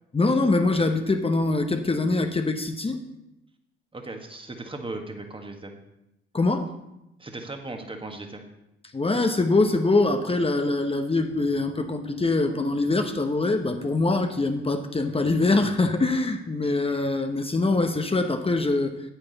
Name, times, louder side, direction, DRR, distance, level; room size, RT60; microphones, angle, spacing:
voice 1, 0.1-3.0 6.3-6.8 8.9-19.1, left 2 dB, 20° left, 6 dB, 1.0 m, -23 dB
voice 2, 3.9-5.7 7.2-8.4, right 2 dB, 20° right, 4 dB, 1.6 m, -37 dB
sound 1, 11.3-16.6, left 1 dB, 50° right, 3.8 m, -45 dB
9.1 x 8.9 x 4.1 m, 0.87 s
hypercardioid pair, 60°, 29 cm